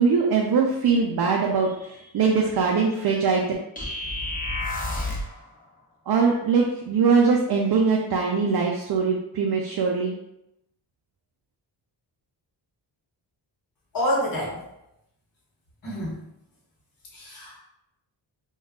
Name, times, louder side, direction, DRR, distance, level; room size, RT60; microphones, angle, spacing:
voice 1, 0.0-3.4 6.1-10.2, right 5 dB, 50° right, 0 dB, 0.5 m, -22 dB
sound 1, 3.8-5.4, left 2 dB, 15° left, 0.7 m, -29 dB
voice 2, 13.9-14.6 15.8-16.2 17.1-17.6, equal, 45° left, -4 dB, 1.1 m, -27 dB
2.3 x 2.3 x 3.5 m, 0.85 s
cardioid pair, 55°, 48 cm